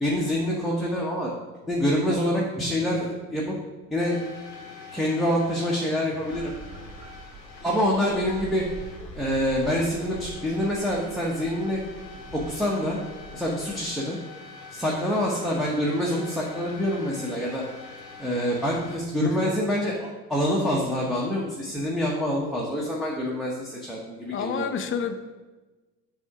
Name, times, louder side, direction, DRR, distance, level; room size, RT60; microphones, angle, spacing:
voice 1, 0.0-1.3 1.7-3.6 3.9-4.2 4.9-6.5 7.6-8.6 9.2-11.8 12.3-13.0 13.3-14.2 14.7-17.6 18.2-24.7, equal, ahead, -4 dB, 1.0 m, -26 dB
sound 1, 4.0-19.0, left 4 dB, 85° left, 1.1 m, -44 dB
sound 2, 6.3-13.8, right 3 dB, 40° right, 1.3 m, -45 dB
voice 2, 19.2-19.5 24.3-25.1, left 7 dB, 25° left, 7 dB, 0.6 m, -29 dB
7.2 x 3.6 x 4.7 m, 1.2 s
figure-of-eight pair, 70°, 49 cm